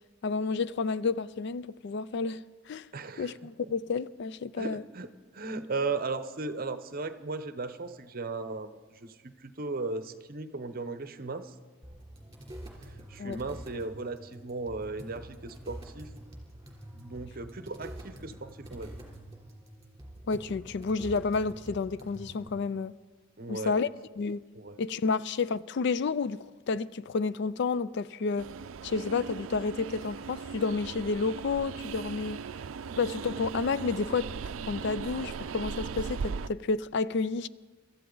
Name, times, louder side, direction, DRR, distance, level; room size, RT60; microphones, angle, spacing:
voice 1, 0.2-2.9 3.2-4.8 13.2-13.4 20.3-22.9 23.5-23.9 24.2-24.4 24.8-26.4 26.7-28.5 28.8-32.4 33.0-37.5, left 4 dB, 55° left, 0.4 m, -30 dB
voice 2, 2.9-3.3 4.6-5.1 5.3-11.5 12.8-16.1 16.9-19.0 23.4-23.8 24.5-24.8, right 3 dB, 45° right, 0.8 m, -36 dB
sound 1, 11.8-22.5, right 1 dB, 20° right, 3.2 m, -46 dB
Train, 28.4-36.5, right 5 dB, 75° right, 0.4 m, -38 dB
25.5 x 13.5 x 3.9 m
head